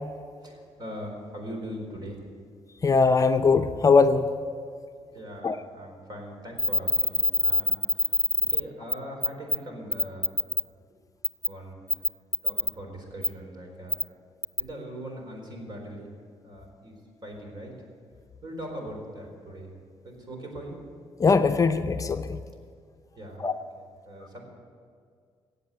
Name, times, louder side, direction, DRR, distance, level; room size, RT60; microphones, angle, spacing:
voice 1, 0.4-2.3 5.1-8.2 8.5-10.3 11.5-11.8 12.4-14.0 14.6-16.1 16.4-17.7 18.4-19.8 20.0-20.8 23.2-23.5 23.8-24.4, equal, 45° right, 2 dB, 4.2 m, -40 dB
voice 2, 2.8-4.3 5.4-5.6 21.2-22.4 23.4-23.5, left 4 dB, 35° left, 8 dB, 0.6 m, -21 dB
sound 1, 6.6-8.6 8.9-9.0 9.2-9.6 9.9-10.6 11.2-11.5 11.9-12.7 13.2-13.3 13.9-14.0 14.4-14.6, left 1 dB, 10° right, 0.4 m, -24 dB
16.5 x 8.2 x 8.9 m, 2.2 s
cardioid pair, 110°, 10 cm